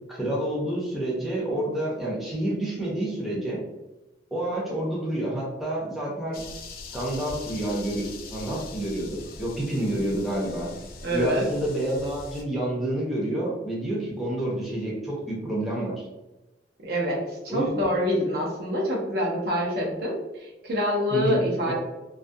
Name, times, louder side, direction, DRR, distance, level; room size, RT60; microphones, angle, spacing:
voice 1, 0.1-3.6 4.3-6.4 6.9-10.7 11.1-16.0 17.5-17.7 21.1-21.7, right 1 dB, ahead, -6 dB, 0.5 m, -28 dB
sound 1, 6.3-12.4, left 3 dB, 50° left, 0.3 m, -42 dB
voice 2, 11.0-11.5 16.8-21.7, equal, 60° right, -2 dB, 0.6 m, -26 dB
2.3 x 2.1 x 2.5 m, 1.0 s
head